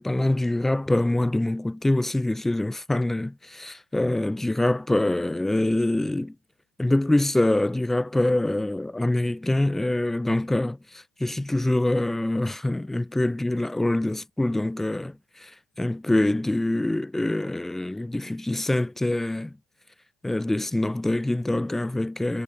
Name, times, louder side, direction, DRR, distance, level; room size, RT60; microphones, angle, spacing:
voice 1, 0.0-6.3 6.8-15.5 15.8-19.5 20.2-22.4, left 1 dB, 5° left, 2.5 m, -25 dB
hypercardioid pair, 70°, 4 cm